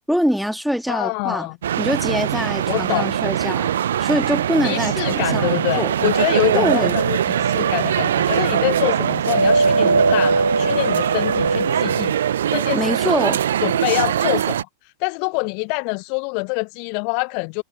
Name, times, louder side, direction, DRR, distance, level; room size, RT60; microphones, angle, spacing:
voice 1, 0.1-1.5 1.8-3.7 4.0-6.0 6.5-7.0 12.7-13.4, equal, ahead, 2.5 m, -23 dB
voice 2, 0.9-1.6 2.7-3.2 4.6-12.2 12.5-13.0 13.6-14.6 15.0-17.6, left 40 dB or more, 45° left, 1.0 m, -25 dB
sound 1, 1.6-14.6, right 10 dB, 65° right, 0.9 m, -22 dB
sound 2, 5.2-12.1, right 2 dB, 80° right, 5.2 m, -23 dB
figure-of-eight pair, 90°, 0 cm